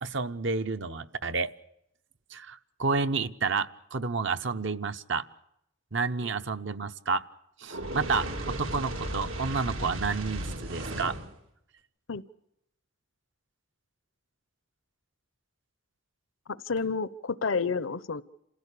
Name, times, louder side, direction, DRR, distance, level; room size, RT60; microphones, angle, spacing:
voice 1, 0.0-1.5 2.3-5.2 5.9-7.2 7.6-11.2, right 4 dB, 65° right, 9 dB, 0.9 m, -30 dB
Fire, 7.7-11.3, right 1 dB, 90° right, 3.1 m, -35 dB
voice 2, 16.5-18.2, left 5 dB, 75° left, 17 dB, 0.8 m, -30 dB
28.0 x 16.0 x 8.4 m, 0.80 s
head